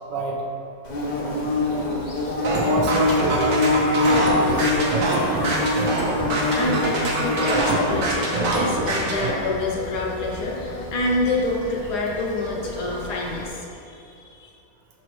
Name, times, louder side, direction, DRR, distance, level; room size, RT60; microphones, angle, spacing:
Bird / Buzz, 0.8-13.5, left 2 dB, 85° left, 0.4 m, -26 dB
sound 1, 2.4-9.3, right 2 dB, 90° right, 1.7 m, -24 dB
voice 1, 2.6-4.0 4.3-4.8, right 3 dB, 70° right, -1 dB, 1.4 m, -28 dB
voice 2, 6.5-14.5, left 2 dB, 65° left, -2 dB, 1.2 m, -27 dB
6.1 x 5.2 x 3.0 m, 2.6 s
omnidirectional pair, 2.0 m